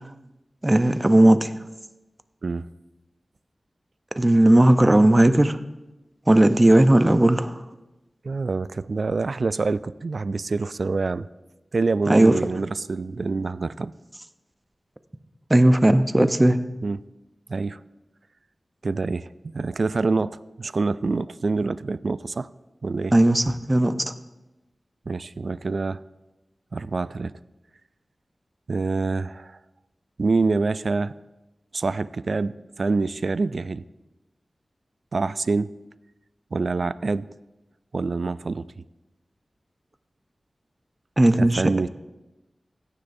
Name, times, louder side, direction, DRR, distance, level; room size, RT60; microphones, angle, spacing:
voice 1, 0.6-1.5 4.2-5.6 6.3-7.6 12.1-12.3 15.5-16.6 23.1-24.1 41.2-41.6, right 1 dB, 25° right, 10 dB, 0.6 m, -17 dB
voice 2, 8.2-11.3 11.7-13.9 16.8-17.0 17.5-17.8 18.8-22.5 22.8-23.1 25.1-26.0 26.7-27.3 28.7-29.6 30.2-31.1 31.7-33.8 35.1-35.7 36.5-37.3 37.9-38.7 41.4-41.9, right 3 dB, 70° right, 16 dB, 0.3 m, -26 dB
17.0 x 9.8 x 2.7 m, 1.0 s
wide cardioid pair, 70°, 0 cm